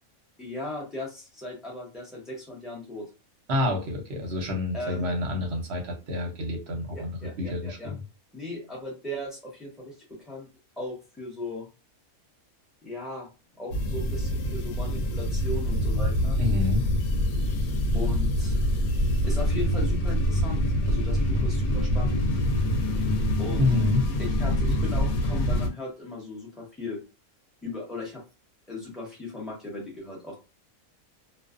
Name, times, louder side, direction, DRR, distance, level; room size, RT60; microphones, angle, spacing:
voice 1, 0.4-3.1 4.7-5.1 6.9-7.9 8.3-10.5 10.8-11.7 12.8-13.3 13.5-16.4 17.9-18.6 19.3-22.2 23.4-23.8 24.2-27.0 27.6-28.2 28.7-30.4, left 2 dB, ahead, -5 dB, 0.7 m, -37 dB
voice 2, 3.5-8.0 16.4-16.8 23.6-24.1, left 2 dB, 55° right, 1 dB, 0.8 m, -28 dB
sound 1, 13.7-25.7, equal, 85° left, 1.1 m, -25 dB
2.4 x 2.3 x 2.4 m, 0.31 s
omnidirectional pair, 1.5 m